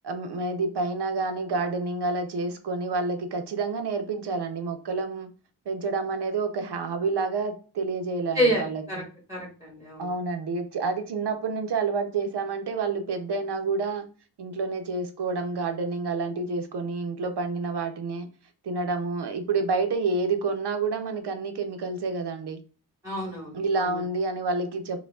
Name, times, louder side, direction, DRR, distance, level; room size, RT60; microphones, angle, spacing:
voice 1, 0.0-5.3 5.7-9.1 10.0-14.1 14.4-18.3 18.6-22.6 23.5-25.0, right 4 dB, 80° right, 0.7 m, -29 dB
voice 2, 8.3-9.0 9.3-10.1 23.0-24.0, equal, 10° right, 1.5 m, -28 dB
4.6 x 2.2 x 2.3 m
wide cardioid pair, 120°, 39 cm